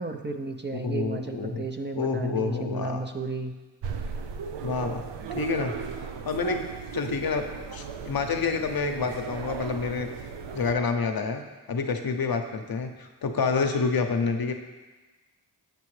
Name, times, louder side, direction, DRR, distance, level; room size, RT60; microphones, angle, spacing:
voice 1, 0.0-3.5, right 3 dB, 25° right, 5 dB, 0.5 m, -33 dB
voice 2, 0.7-1.7 2.0-3.0 4.6-5.1 5.3-5.9 6.2-10.1 10.5-11.4 11.7-14.5, left 4 dB, 60° left, 6 dB, 0.7 m, -28 dB
sound 1, 3.8-10.7, right 6 dB, 90° right, 0.5 m, -36 dB
6.8 x 6.7 x 3.2 m, 1.2 s
cardioid pair, 45°, 41 cm